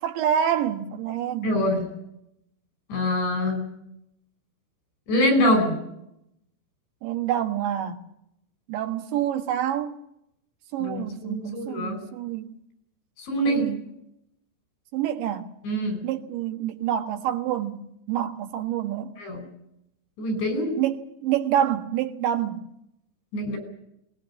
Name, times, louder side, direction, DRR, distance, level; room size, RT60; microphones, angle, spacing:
voice 1, 0.0-1.5 7.0-8.0 8.7-10.0 10.7-12.5 13.4-13.9 14.9-15.5 16.0-19.2 20.8-22.7, right 10 dB, 90° right, 3.7 m, -27 dB
voice 2, 1.4-1.8 2.9-3.7 5.1-5.8 10.8-12.0 13.2-13.6 15.6-16.0 19.2-19.5 20.2-20.8 23.3-23.6, left 1 dB, 85° left, 7.5 m, -24 dB
20.0 x 20.0 x 8.9 m
omnidirectional pair, 5.0 m